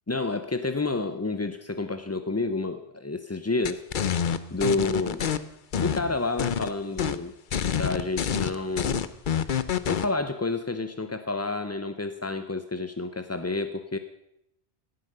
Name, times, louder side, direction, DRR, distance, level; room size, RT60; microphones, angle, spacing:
voice 1, 0.1-3.8 4.5-5.2 5.8-7.3 7.7-9.1 9.9-14.0, left 3 dB, 20° left, 9 dB, 0.4 m, -29 dB
sound 1, 3.6-5.4 5.7-6.7 7.0-7.2 7.5-10.1, left 8 dB, 50° left, 0.8 m, -27 dB
17.5 x 9.4 x 6.7 m, 0.82 s
omnidirectional pair, 1.2 m